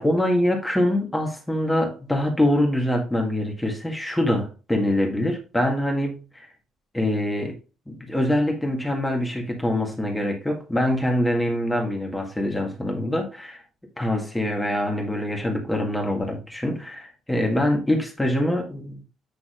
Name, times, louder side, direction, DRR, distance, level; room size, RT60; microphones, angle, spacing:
voice 1, 0.0-6.5 6.9-7.6 7.9-13.6 14.0-19.0, left 1 dB, 10° left, 1.8 m, -24 dB
8.3 x 5.9 x 2.5 m
figure-of-eight pair, 45°, 0 cm